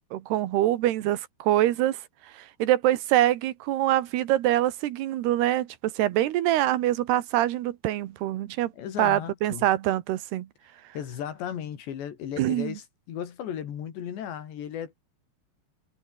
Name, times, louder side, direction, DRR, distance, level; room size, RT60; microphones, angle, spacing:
voice 1, 0.1-2.0 2.3-8.7 9.0-10.5 12.4-12.8, right 14 dB, 75° right, 3.2 m, -24 dB
voice 2, 8.8-9.7 11.0-15.0, left 9 dB, 85° left, 5.1 m, -35 dB
omnidirectional pair, 4.9 m